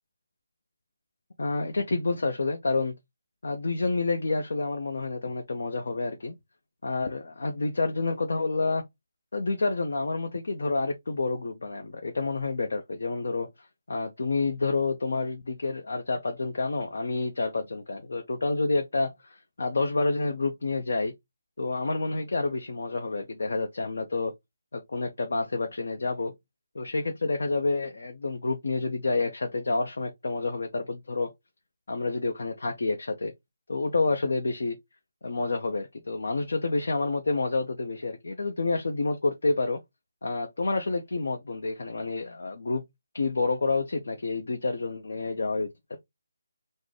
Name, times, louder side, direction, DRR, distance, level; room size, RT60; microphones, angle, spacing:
voice 1, 1.4-2.9 3.4-6.3 6.8-8.8 9.3-21.1 21.6-24.3 24.7-26.3 26.7-31.3 31.9-33.3 33.7-34.8 35.2-39.8 40.2-42.8 43.1-45.7, left 3 dB, 65° left, 0.6 m, -29 dB
3.9 x 2.0 x 3.1 m
figure-of-eight pair, 160°, 0 cm